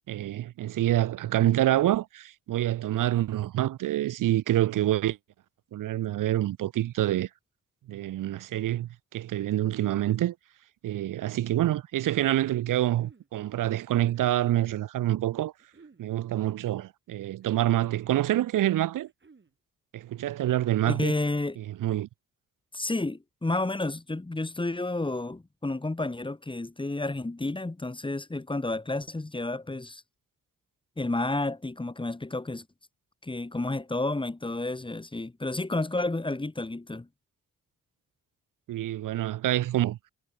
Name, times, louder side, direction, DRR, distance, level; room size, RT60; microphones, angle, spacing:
voice 1, 0.0-5.2 5.7-7.3 7.9-10.4 10.8-15.5 16.0-19.1 19.9-21.1 21.6-22.1 38.7-40.0, right 13 dB, 80° right, 0.6 m, -27 dB
sound 1, 12.5-13.3 14.0-14.4 15.6-16.0 17.1-17.7 18.9-19.5, right 4 dB, 35° right, 7.6 m, -56 dB
voice 2, 20.9-21.6 22.7-30.0 31.0-32.7 33.2-37.1, left 2 dB, 15° left, 2.0 m, -31 dB
cardioid pair, 90°, 32 cm